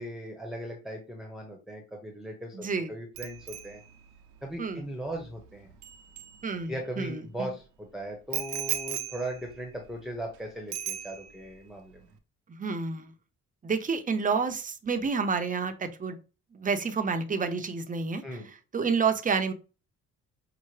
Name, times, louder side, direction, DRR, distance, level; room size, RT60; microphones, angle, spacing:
voice 1, 0.0-3.8 4.4-5.7 6.7-12.1 18.2-18.5, right 1 dB, ahead, 0 dB, 0.9 m, -38 dB
voice 2, 2.5-2.9 4.6-4.8 6.4-7.5 12.5-13.1 13.6-16.2 16.5-18.2 18.7-19.5, right 5 dB, 25° right, 7 dB, 0.7 m, -29 dB
Bicycle bell, 3.2-7.0 8.3-10.4 10.7-11.6 11.9-12.1, right 12 dB, 75° right, 0.7 m, -38 dB
5.6 x 2.1 x 3.2 m, 0.32 s
cardioid pair, 90°, 30 cm